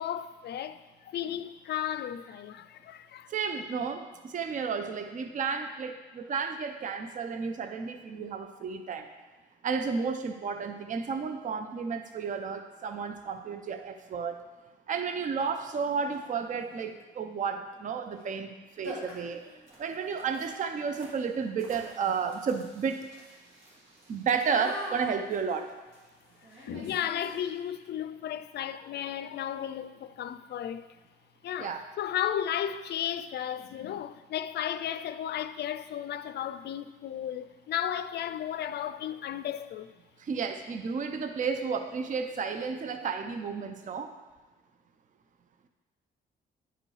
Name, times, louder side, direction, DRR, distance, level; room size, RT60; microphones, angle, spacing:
voice 1, 0.0-3.3 26.6-30.9 31.4-39.9, left 10 dB, 60° left, 0.4 m, -34 dB
voice 2, 3.3-9.1 9.6-14.4 14.9-19.4 19.8-23.1 24.1-25.7 31.6-31.9 40.2-44.1, right 5 dB, 40° right, 0.5 m, -32 dB
sound 1, 15.4-15.5 16.0-16.4 18.1-18.3 18.5-18.6 18.8-27.7, equal, 70° right, 2.1 m, -46 dB
9.8 x 5.2 x 3.2 m
cardioid pair, 90°, 20 cm